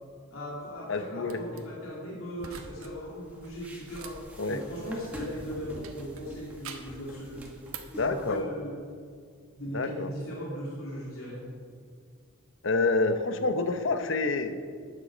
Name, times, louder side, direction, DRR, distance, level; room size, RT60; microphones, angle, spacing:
voice 1, 0.3-4.2 4.5-7.5 7.9-8.8 9.6-11.4, equal, 80° left, -5 dB, 2.6 m, -38 dB
voice 2, 0.9-1.4 4.4-4.6 8.0-8.5 9.7-10.1 12.6-14.8, left 3 dB, 60° left, 9 dB, 0.8 m, -28 dB
sound 1, 1.2-1.6 2.4-2.9 3.2-5.4 5.8-7.0 7.4-8.0, right 6 dB, 85° right, 1.2 m, -46 dB
sound 2, 3.0-8.4, equal, 5° right, 1.6 m, -45 dB
12.5 x 10.0 x 5.1 m, 2.1 s
head